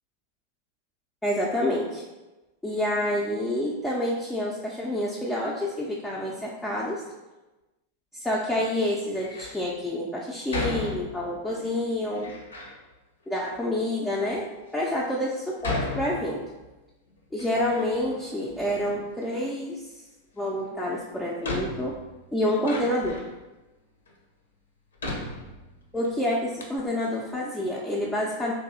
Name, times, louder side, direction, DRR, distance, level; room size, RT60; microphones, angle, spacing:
voice 1, 1.2-2.0 2.6-7.0 8.2-12.3 13.3-16.4 17.3-19.8 20.4-22.0 22.3-23.2 25.9-28.5, left 1 dB, 5° left, -5 dB, 0.4 m, -28 dB
Door, 9.1-9.6 10.5-11.5 12.2-12.8 13.6-13.7 14.3-14.4 15.6-16.8 17.1-18.2 18.5-19.3 20.6-20.7 21.4-23.4 24.1-24.2 25.0-26.1 26.3-26.4 26.6-26.8, left 2 dB, 70° left, 0.6 m, -35 dB
3.0 x 2.6 x 3.6 m, 1.1 s
figure-of-eight pair, 90°, 0 cm